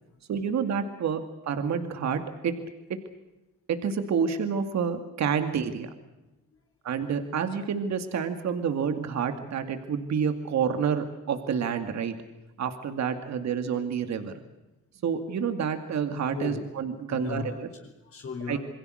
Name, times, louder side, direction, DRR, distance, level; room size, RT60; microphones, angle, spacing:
voice 1, 0.3-2.5 3.7-5.9 6.8-12.1 12.6-14.3 15.0-17.7 18.5-18.6, right 7 dB, 65° right, 7 dB, 2.3 m, -28 dB
voice 2, 16.3-16.7 17.1-18.6, left 5 dB, 45° left, 3 dB, 4.1 m, -37 dB
28.0 x 22.0 x 6.5 m, 1.0 s
cardioid pair, 90°, 30 cm